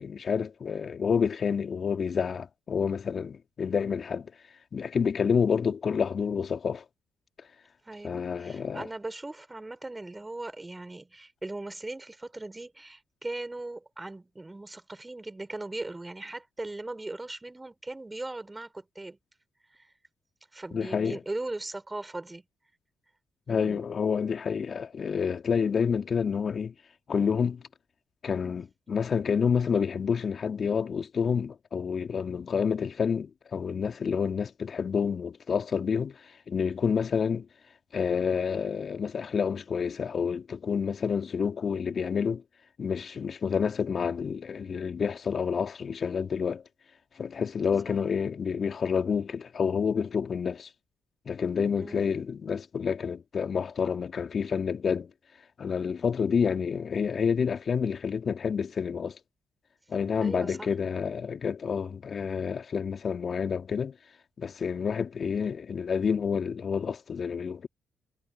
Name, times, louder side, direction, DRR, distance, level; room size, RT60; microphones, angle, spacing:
voice 1, 0.0-4.3 4.7-6.8 8.0-8.9 20.7-21.2 23.5-26.7 27.1-27.6 28.2-37.5 37.9-42.4 42.8-46.6 47.2-50.7 51.3-55.1 55.6-59.2 59.9-63.9 64.4-67.7, left 6 dB, 50° left, 2.4 m, -28 dB
voice 2, 7.8-19.2 19.7-19.9 20.5-22.4 23.5-23.8 47.9-48.0 51.8-52.1 60.1-60.7, right 2 dB, 20° right, 6.0 m, -39 dB
hypercardioid pair, 45°, 0 cm